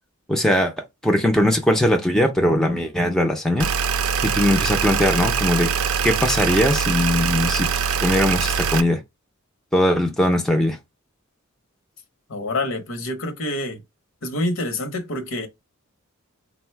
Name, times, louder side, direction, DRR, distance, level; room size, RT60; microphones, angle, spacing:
voice 1, 0.3-0.7 1.0-3.7 4.2-5.7 6.0-9.0 9.7-10.8, left 1 dB, ahead, 0.4 m, -20 dB
sound 1, 3.6-8.8, right 6 dB, 75° right, 0.4 m, -23 dB
voice 2, 12.3-13.8 14.2-15.5, left 1 dB, 65° left, 0.8 m, -27 dB
3.8 x 2.1 x 4.4 m
head